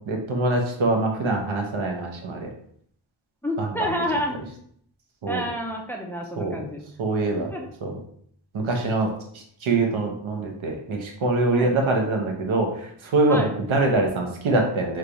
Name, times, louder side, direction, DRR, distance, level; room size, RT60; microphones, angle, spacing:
voice 1, 0.1-2.5 3.6-3.9 5.2-5.4 6.4-6.6 7.0-7.5 7.8-7.9 8.5-9.1 9.6-12.7 13.1-15.0, right 2 dB, 80° right, 2 dB, 0.8 m, -24 dB
voice 2, 3.4-4.4 5.3-6.8 7.3-7.7 11.5-11.8 13.3-13.6, equal, 5° left, 0 dB, 0.3 m, -29 dB
3.2 x 2.3 x 3.8 m, 0.64 s
wide cardioid pair, 160°, 47 cm